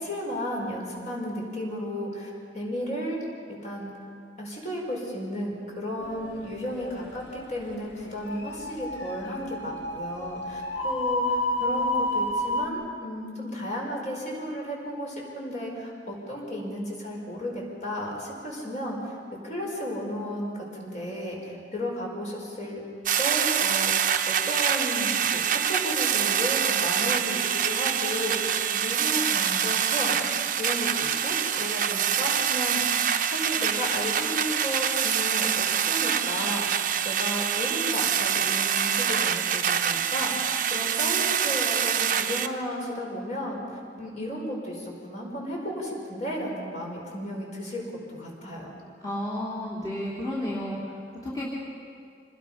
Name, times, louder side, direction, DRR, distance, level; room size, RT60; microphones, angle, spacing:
voice 1, 0.0-3.2 3.6-3.9 4.4-19.2 19.4-22.8 23.2-30.3 30.6-32.9 33.3-47.8 48.1-48.7, equal, 40° left, -2 dB, 5.4 m, -34 dB
sound 1, 6.0-12.7, left 1 dB, 65° left, 1.8 m, -31 dB
sound 2, 23.1-42.5, right 8 dB, 45° right, 0.9 m, -25 dB
voice 2, 49.0-50.8 51.2-51.5, left 1 dB, 20° left, -7 dB, 3.3 m, -31 dB
26.5 x 20.0 x 5.8 m, 2.3 s
head